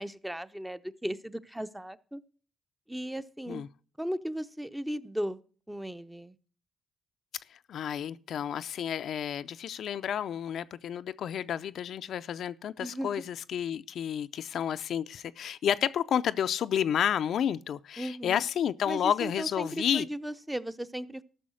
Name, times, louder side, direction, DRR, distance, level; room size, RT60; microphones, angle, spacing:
voice 1, 0.0-2.2 2.9-3.6 4.0-5.4 5.7-6.4 12.8-13.2 18.0-18.4 18.9-21.2, equal, 5° right, 0.6 m, -36 dB
voice 2, 7.7-20.1, left 9 dB, 65° left, 0.4 m, -30 dB
13.5 x 6.3 x 6.3 m
cardioid pair, 90°, 0 cm